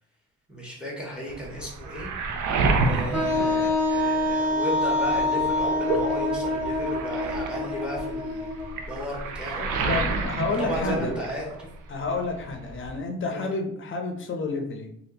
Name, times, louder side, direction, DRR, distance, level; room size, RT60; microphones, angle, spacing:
voice 1, 0.5-2.1 2.8-9.7 10.6-11.7 13.2-13.5, left 1 dB, 5° right, -3 dB, 1.2 m, -34 dB
Waves surf, 1.3-4.5 4.8-11.8 12.0-13.0, right 3 dB, 85° right, 0.6 m, -30 dB
Wind instrument woodwind instrument, 3.1-8.9, left 2 dB, 55° right, 1.0 m, -26 dB
voice 2, 9.8-11.1 11.9-14.9, left 3 dB, 40° left, 4 dB, 0.6 m, -30 dB
3.3 x 2.5 x 2.7 m, 0.73 s
cardioid pair, 90°, 30 cm